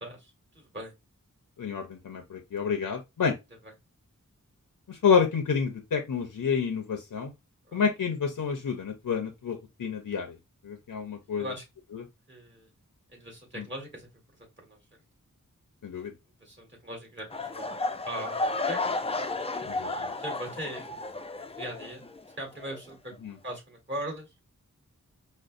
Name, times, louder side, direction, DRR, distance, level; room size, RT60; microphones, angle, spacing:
voice 1, 0.5-0.9 7.7-7.9 11.3-11.6 12.3-12.7 13.1-14.1 14.4-14.8 16.4-17.8 18.0-19.0 19.8-20.8 21.4-22.1 22.4-23.1 23.4-24.3, equal, 35° right, 1.7 m, -39 dB
voice 2, 1.6-3.3 4.9-7.3 7.7-10.3 10.6-11.5 11.9-12.0 13.6-13.7 15.8-16.1 19.7-20.1 23.2-23.3, left 6 dB, 80° left, 0.6 m, -29 dB
sound 1, 17.3-22.3 22.6-22.9 23.5-23.6, left 2 dB, 20° left, 0.4 m, -33 dB
5.1 x 2.1 x 2.5 m
wide cardioid pair, 70°, 33 cm